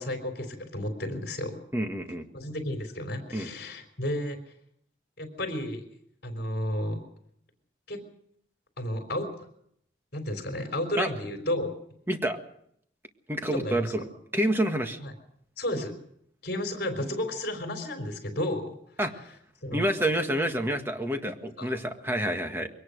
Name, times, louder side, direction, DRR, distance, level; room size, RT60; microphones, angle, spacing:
voice 1, 0.0-1.6 2.3-4.4 5.2-5.8 6.2-7.0 7.9-8.0 8.8-9.3 10.1-11.7 13.4-13.9 15.0-15.1 15.6-16.0 16.4-18.8 19.6-19.9 21.6-21.7, left 1 dB, 55° left, 4 dB, 3.8 m, -32 dB
voice 2, 1.7-2.2 3.3-3.5 11.0-11.1 12.1-12.4 13.3-14.1 14.3-15.0 19.0-19.1 19.7-22.7, right 1 dB, 10° right, 5 dB, 1.7 m, -28 dB
22.5 x 18.5 x 6.5 m, 0.69 s
head